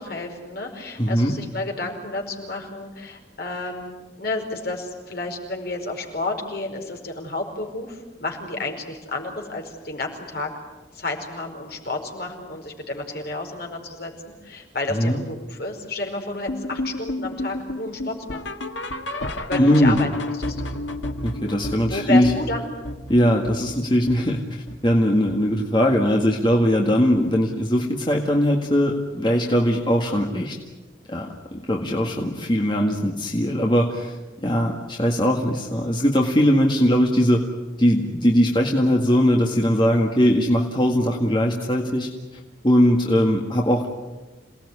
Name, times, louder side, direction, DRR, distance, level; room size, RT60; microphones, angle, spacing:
voice 1, 0.0-10.5 10.9-14.1 14.4-18.4 19.5-20.1 20.4-20.6 21.9-22.7, left 2 dB, 55° left, 2 dB, 4.9 m, -31 dB
voice 2, 1.0-1.3 14.9-15.2 19.6-20.0 21.2-22.3 23.1-30.6 31.1-37.4 37.8-42.1 42.6-43.9, equal, 25° left, 0 dB, 1.9 m, -20 dB
sound 1, 16.5-25.6 25.9-26.2 26.5-26.6 27.1-27.2 27.7-27.8, left 1 dB, 85° left, 1.8 m, -32 dB
28.0 x 18.5 x 9.8 m, 1.2 s
head